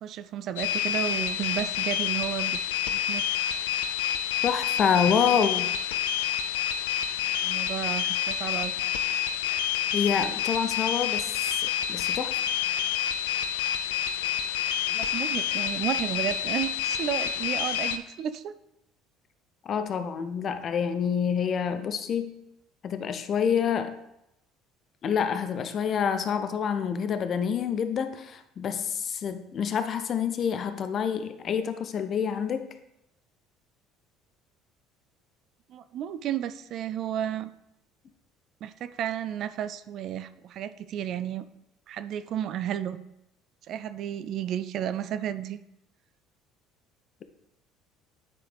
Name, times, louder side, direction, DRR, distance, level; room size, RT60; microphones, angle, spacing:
voice 1, 0.0-2.6 2.9-3.2 7.4-8.8 14.9-18.5 35.7-37.5 38.6-41.4 41.9-43.0 43.7-45.6, right 10 dB, 60° right, 12 dB, 0.4 m, -32 dB
sound 1, 0.6-18.0, left 9 dB, 85° left, 0.4 m, -28 dB
voice 2, 4.4-5.7 9.9-11.4 11.6-12.4 19.6-22.3 22.8-24.0 25.0-32.7, left 7 dB, 50° left, 9 dB, 0.7 m, -27 dB
9.5 x 4.7 x 3.4 m, 0.84 s
hypercardioid pair, 70°, 0 cm